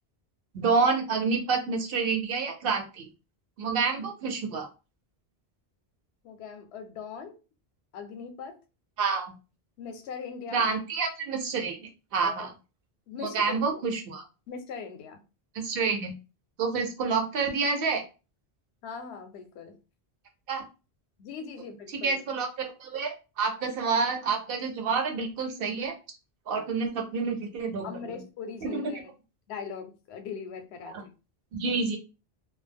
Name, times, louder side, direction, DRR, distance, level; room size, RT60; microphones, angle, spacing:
voice 1, 0.5-3.1 3.6-4.7 9.0-9.3 10.5-11.8 12.1-12.5 13.3-14.2 15.5-16.2 16.6-18.0 20.5-20.7 21.9-25.9 26.5-27.9 28.6-28.9 31.5-32.0, right 4 dB, 65° right, 3 dB, 0.8 m, -28 dB
voice 2, 6.2-7.4 7.9-8.6 9.8-10.7 12.2-12.5 13.1-13.8 14.5-15.2 18.8-19.8 21.2-22.1 26.5-26.7 27.8-29.1 29.5-31.1, left 6 dB, 80° left, 6 dB, 0.8 m, -40 dB
2.2 x 2.0 x 3.3 m, 0.31 s
omnidirectional pair, 1.1 m